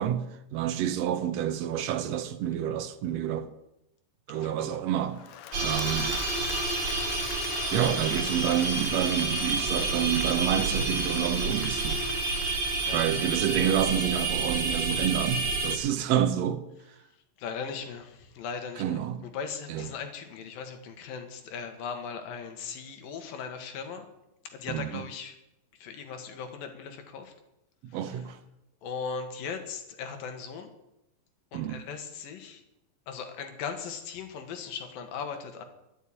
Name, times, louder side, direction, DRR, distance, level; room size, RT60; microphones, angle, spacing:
voice 1, 0.0-3.5 4.3-5.2 5.6-6.2 7.7-12.0 12.9-16.6 18.8-19.2 19.7-19.8 24.7-25.0 27.8-28.4 31.5-31.8, right 10 dB, 70° right, 1.7 m, -28 dB
voice 2, 4.4-4.8 12.8-13.2 17.4-24.1 24.4-25.4 25.8-27.3 27.9-28.3 28.8-30.7 31.5-32.6 33.1-35.6, left 6 dB, 85° left, 3.3 m, -38 dB
Applause / Crowd, 5.1-14.2, left 10 dB, 70° left, 1.8 m, -42 dB
sound 1, 5.5-15.8, right 3 dB, 45° right, 2.6 m, -29 dB
11.0 x 9.2 x 8.9 m
omnidirectional pair, 3.9 m